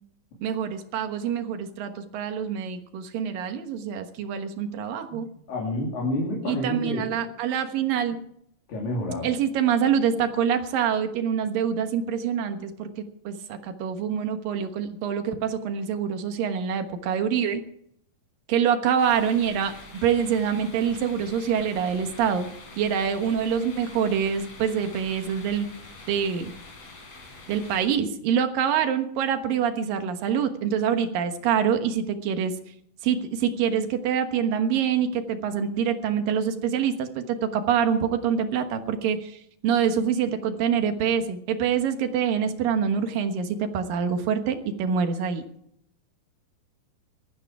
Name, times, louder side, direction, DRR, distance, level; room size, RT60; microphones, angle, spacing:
voice 1, 0.4-5.3 6.5-8.2 9.2-17.6 18.5-19.7 20.0-25.7 26.1-26.5 27.5-32.5 33.0-45.4, right 7 dB, 85° right, 7 dB, 3.1 m, -25 dB
voice 2, 5.1-7.2 8.7-9.3, left 1 dB, 80° left, -3 dB, 4.7 m, -29 dB
sound 1, 19.0-27.9, left 3 dB, 50° left, 5.0 m, -45 dB
18.5 x 13.5 x 4.8 m, 0.72 s
omnidirectional pair, 3.9 m